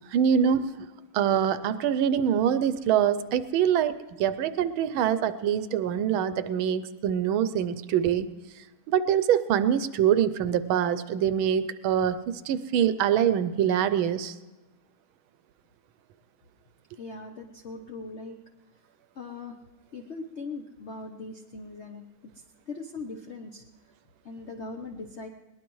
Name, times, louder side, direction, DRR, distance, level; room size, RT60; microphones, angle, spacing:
voice 1, 0.1-0.9 1.1-8.3 8.9-14.3, right 9 dB, 75° right, 13 dB, 1.4 m, -24 dB
voice 2, 17.0-18.4 19.1-19.6 19.9-22.0 22.3-23.6 24.2-25.3, left 3 dB, 65° left, 3 dB, 0.6 m, -40 dB
21.0 x 19.0 x 3.1 m, 1.1 s
omnidirectional pair, 2.4 m